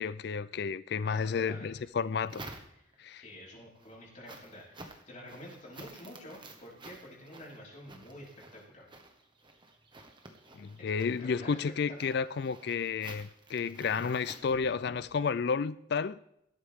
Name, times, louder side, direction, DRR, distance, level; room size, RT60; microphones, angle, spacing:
voice 1, 0.0-2.4 3.0-3.2 10.6-16.2, left 5 dB, 55° left, 0.4 m, -32 dB
voice 2, 1.0-1.8 2.8-8.8 11.2-11.6 11.9-12.2, equal, 40° left, 4.5 m, -49 dB
sound 1, 1.7-3.1 3.6-15.2, right 2 dB, 25° right, 1.4 m, -52 dB
17.0 x 12.5 x 3.6 m
head